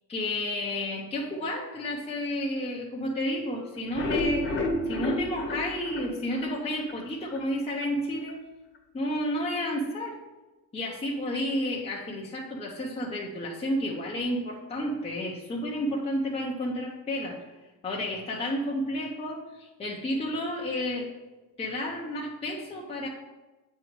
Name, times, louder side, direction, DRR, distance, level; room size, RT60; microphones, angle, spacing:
voice 1, 0.1-4.5 4.8-8.4 8.9-10.2 10.7-17.4 17.8-21.1 21.6-23.1, left 1 dB, 15° left, -4 dB, 0.8 m, -31 dB
sound 1, 3.8-7.0 7.4-7.5 7.8-7.9 8.3-8.4, left 1 dB, 35° left, 1.1 m, -31 dB
8.2 x 3.1 x 5.1 m, 1.1 s
cardioid pair, 150°, 35 cm